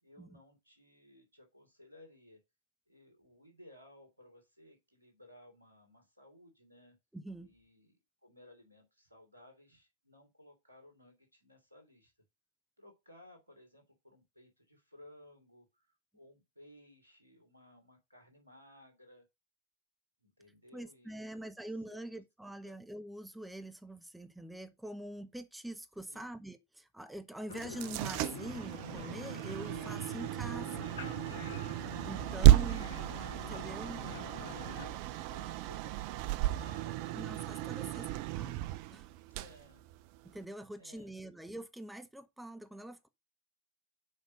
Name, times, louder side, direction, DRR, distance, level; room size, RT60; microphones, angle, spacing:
voice 1, 0.0-2.4 2.9-7.0 7.4-12.1 12.8-19.2 20.2-22.1 22.6-22.7 26.1-26.3 32.3-33.0 33.3-37.0 37.6-38.6 39.3-39.8 40.7-41.1, left 1 dB, 80° right, 3.1 m, -59 dB
voice 2, 7.1-7.5 20.7-30.9 32.0-32.9 33.5-34.0 37.1-38.1 38.3-38.5 38.9-39.1 40.2-43.1, right 1 dB, 5° right, 0.8 m, -44 dB
sound 1, 27.5-34.9, left 5 dB, 65° left, 1.2 m, -47 dB
sound 2, 27.5-40.4, right 15 dB, 45° right, 0.5 m, -32 dB
sound 3, 30.4-34.2, left 4 dB, 30° left, 3.9 m, -61 dB
6.4 x 5.2 x 6.1 m
figure-of-eight pair, 90°, 0 cm